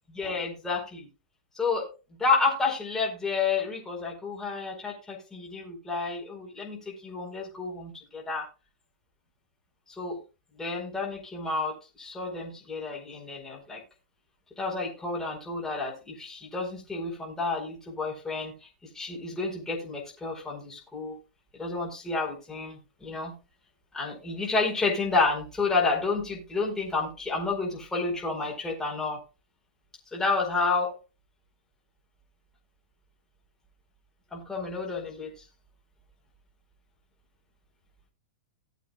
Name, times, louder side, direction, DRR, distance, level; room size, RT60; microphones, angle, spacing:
voice 1, 0.1-1.1 1.5-1.9 2.2-8.5 10.0-10.2 10.6-13.8 14.6-18.5 18.9-21.1 21.5-23.3 23.9-29.2 30.1-30.9 34.3-35.3, left 3 dB, 10° left, -3 dB, 4.7 m, -30 dB
18.5 x 8.0 x 2.5 m, 0.30 s
hypercardioid pair, 125°, 5 cm